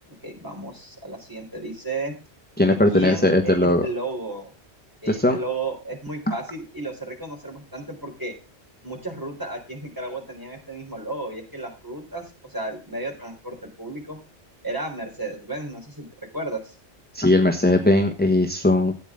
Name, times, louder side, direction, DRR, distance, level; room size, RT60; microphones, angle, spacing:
voice 1, 0.2-2.1 2.6-4.5 5.0-8.3 8.8-14.2 14.6-16.8, right 2 dB, 20° right, 0 dB, 3.8 m, -33 dB
voice 2, 2.6-3.9 5.1-5.4 17.1-18.9, left 1 dB, 10° left, 4 dB, 1.2 m, -19 dB
14.0 x 9.3 x 3.6 m, 0.31 s
omnidirectional pair, 1.1 m